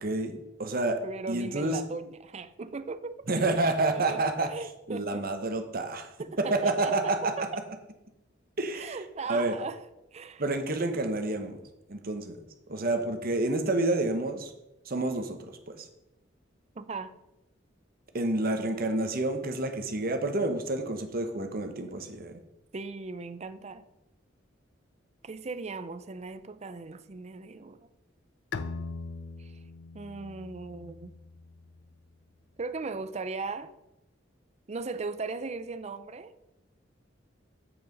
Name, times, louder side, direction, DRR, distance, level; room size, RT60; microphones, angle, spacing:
voice 1, 0.0-1.0 1.3-1.8 3.3-4.5 4.9-6.1 6.4-7.3 8.6-9.0 9.3-9.6 10.4-11.6 11.9-12.4 12.7-14.5 14.8-15.9 18.1-22.4, right 2 dB, 50° right, 1.1 m, -29 dB
voice 2, 1.0-3.3 3.9-4.2 4.5-5.2 6.2-7.5 8.7-9.8 10.1-10.4 16.7-17.2 22.7-23.8 25.2-27.9 29.4-29.6 29.9-31.1 32.6-33.7 34.7-36.3, right 4 dB, 35° right, 0.5 m, -38 dB
Bowed string instrument, 28.5-32.0, left 4 dB, 65° left, 0.5 m, -41 dB
8.0 x 6.7 x 5.3 m
head